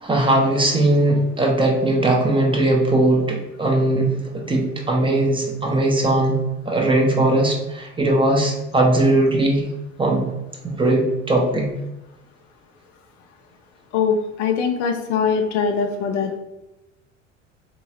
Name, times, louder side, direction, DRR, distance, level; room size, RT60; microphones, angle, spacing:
voice 1, 0.0-6.4 6.7-9.6 10.0-10.2 10.8-11.7, right 1 dB, 15° right, 0 dB, 0.9 m, -19 dB
voice 2, 13.9-16.4, left 6 dB, 70° left, 5 dB, 0.6 m, -22 dB
3.7 x 2.9 x 2.8 m, 0.97 s
figure-of-eight pair, 65°, 37 cm